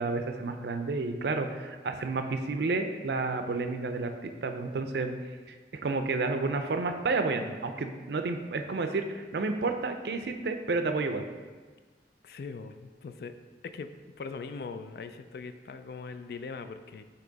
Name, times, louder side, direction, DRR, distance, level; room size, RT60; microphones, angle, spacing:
voice 1, 0.0-5.1 5.5-5.6 5.8-11.2, right 3 dB, 70° right, 7 dB, 0.5 m, -30 dB
voice 2, 12.2-13.3 13.6-13.9 14.2-17.0, left 4 dB, 60° left, 9 dB, 0.3 m, -41 dB
8.1 x 2.9 x 3.9 m, 1.4 s
head